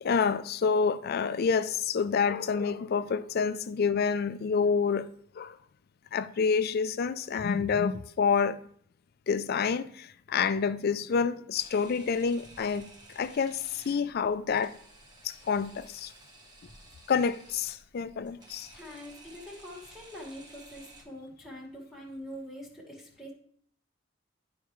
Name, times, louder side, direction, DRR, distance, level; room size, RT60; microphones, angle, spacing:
voice 1, 0.0-5.1 5.4-5.6 6.1-8.6 9.3-14.8 15.2-16.1 17.1-18.7, left 5 dB, 50° left, 0.4 m, -28 dB
Camera, 11.5-21.0, right 2 dB, 20° right, 1.2 m, -54 dB
voice 2, 18.7-23.3, equal, ahead, 1.6 m, -44 dB
11.0 x 4.6 x 3.1 m
head